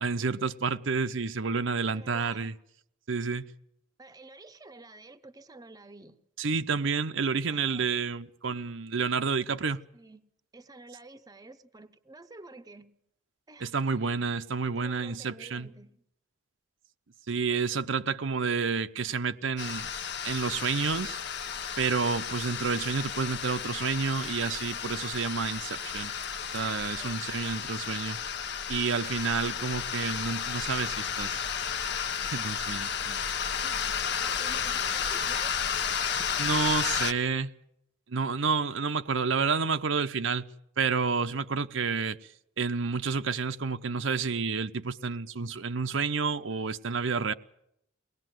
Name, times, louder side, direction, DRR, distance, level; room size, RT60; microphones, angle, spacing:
voice 1, 0.0-2.5 3.1-3.5 6.4-9.8 13.6-15.7 17.3-19.9 20.2-21.2 21.8-26.1 26.5-28.2 28.7-31.4 32.3-33.2 36.4-37.5 38.1-40.5 40.8-42.2 42.6-47.3, right 5 dB, 75° right, 0.8 m, -29 dB
voice 2, 1.9-2.5 4.0-6.2 7.5-7.9 9.9-10.2 10.5-12.9 13.5-13.7 14.6-15.9 26.9-27.3 29.0-29.1 33.6-35.5, right 2 dB, 20° right, 0.8 m, -50 dB
sound 1, 19.6-37.1, left 7 dB, 60° left, 1.0 m, -32 dB
22.5 x 19.0 x 7.8 m
head